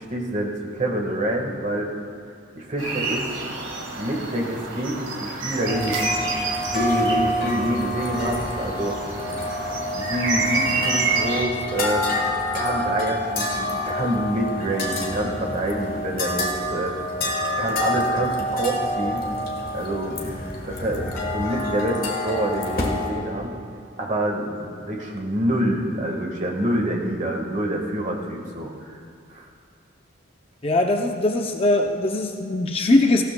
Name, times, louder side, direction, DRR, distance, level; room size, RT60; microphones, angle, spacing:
voice 1, 0.0-1.9 2.5-3.3 4.0-6.2 6.7-9.0 9.9-12.0 12.5-16.9 17.6-19.2 19.7-20.4 20.6-23.5 24.0-28.9 29.3-29.5, right 1 dB, 35° right, 1 dB, 1.5 m, -26 dB
sound 1, 2.8-11.4, right 3 dB, 70° right, 1.7 m, -28 dB
sound 2, 5.6-23.1, left 1 dB, 45° left, 1.5 m, -27 dB
voice 2, 30.6-33.2, left 2 dB, 30° left, 3 dB, 0.5 m, -21 dB
18.5 x 15.0 x 2.2 m, 2.3 s
head